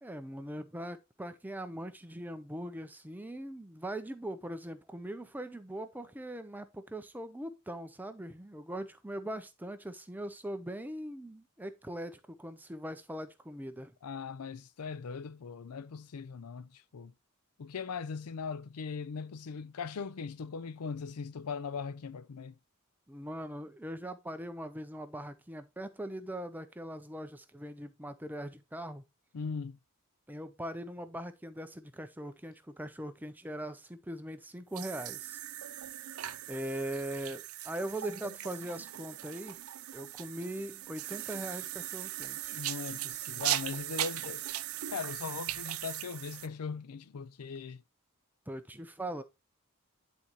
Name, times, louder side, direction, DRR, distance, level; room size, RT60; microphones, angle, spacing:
voice 1, 0.0-13.9 23.1-29.0 30.3-35.4 36.5-39.6 39.9-42.6 48.5-49.2, right 1 dB, 10° right, 0.5 m, -41 dB
voice 2, 14.0-17.1 17.6-22.6 29.3-29.8 42.5-44.4 44.9-47.8, left 5 dB, 90° left, 0.5 m, -40 dB
sound 1, 34.7-46.5, right 14 dB, 70° right, 0.5 m, -39 dB
10.0 x 4.2 x 3.0 m
head